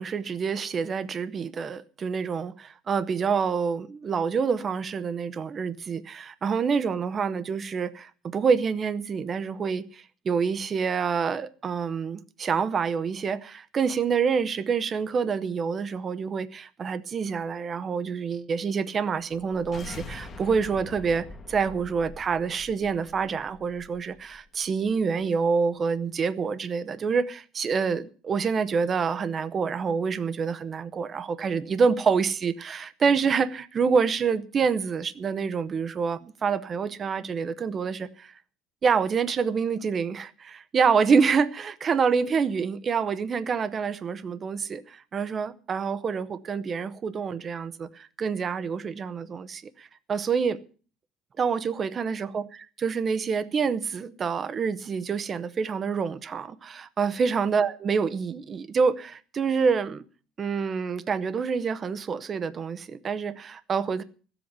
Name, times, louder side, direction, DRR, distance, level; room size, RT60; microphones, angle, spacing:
voice 1, 0.0-38.3 38.8-50.6 51.4-60.0 60.4-64.0, right 5 dB, 25° right, 0.8 m, -27 dB
sound 1, 19.3-24.4, left 3 dB, 20° left, 1.3 m, -44 dB
15.5 x 8.0 x 8.1 m
cardioid pair, 180°, 0 cm